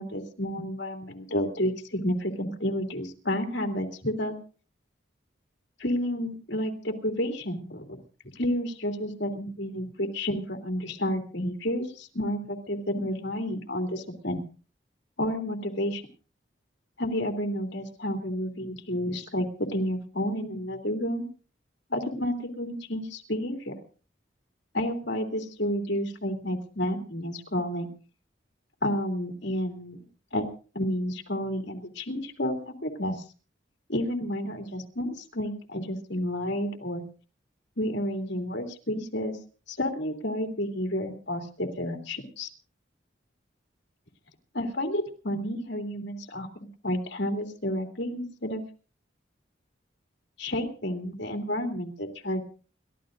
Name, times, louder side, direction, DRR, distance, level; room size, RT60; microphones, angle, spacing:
voice 1, 0.0-4.4 5.8-8.0 8.4-14.4 15.2-16.0 17.0-21.3 21.9-23.7 24.7-27.9 28.8-30.1 30.3-30.5 30.7-33.2 33.9-37.0 37.8-39.4 39.7-42.5 44.5-48.6 50.4-52.4, left 1 dB, 70° left, 3 dB, 2.8 m, -30 dB
29.5 x 13.5 x 2.6 m, 0.37 s
head